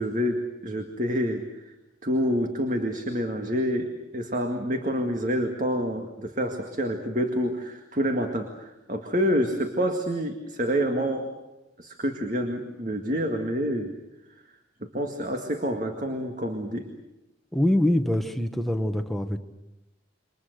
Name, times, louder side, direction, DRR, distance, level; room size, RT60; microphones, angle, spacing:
voice 1, 0.0-1.7 2.0-11.3 11.8-13.9 14.8-16.9, equal, 45° right, 4 dB, 1.9 m, -28 dB
voice 2, 17.5-19.4, left 1 dB, ahead, 6 dB, 1.2 m, -24 dB
28.5 x 24.5 x 6.7 m, 0.96 s
head